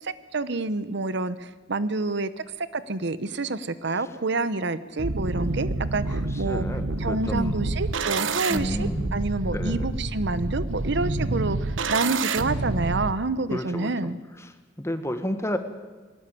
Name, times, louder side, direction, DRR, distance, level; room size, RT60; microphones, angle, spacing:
voice 1, 0.0-6.7 7.0-14.2, right 3 dB, 65° right, 15 dB, 1.0 m, -28 dB
sound 1, 5.0-13.1, right 3 dB, 90° right, 1.1 m, -28 dB
voice 2, 6.4-7.6 8.5-9.0 9.5-9.9 13.5-13.9 14.8-15.6, equal, 15° left, 8 dB, 1.7 m, -30 dB
21.5 x 18.5 x 8.5 m, 1.3 s
head